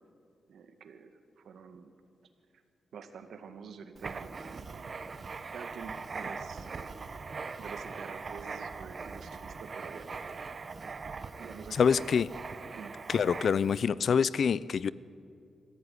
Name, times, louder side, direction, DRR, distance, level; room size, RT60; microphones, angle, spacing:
voice 1, 0.5-1.1 1.4-1.9 2.9-5.0 5.5-6.9 7.3-10.2 11.4-12.0 12.7-12.9, right 6 dB, 80° right, 8 dB, 1.9 m, -47 dB
Writing, 4.0-13.8, right 4 dB, 40° right, 1.0 m, -41 dB
voice 2, 11.7-12.3 13.1-14.9, left 6 dB, 60° left, 19 dB, 0.5 m, -26 dB
23.5 x 15.5 x 9.7 m, 2.5 s
wide cardioid pair, 135°, 0 cm